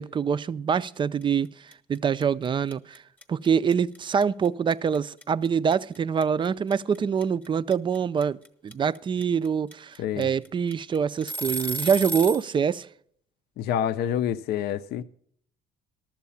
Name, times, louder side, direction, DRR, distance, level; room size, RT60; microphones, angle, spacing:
voice 1, 0.0-3.0 3.3-8.4 8.6-12.9, right 7 dB, 30° right, 0.4 m, -25 dB
sound 1, 1.2-1.5 1.7-12.5, right 2 dB, 10° left, 0.8 m, -33 dB
voice 2, 10.0-10.3 13.6-15.0, left 10 dB, 70° left, 0.5 m, -27 dB
12.0 x 7.4 x 7.0 m
cardioid pair, 110°, 17 cm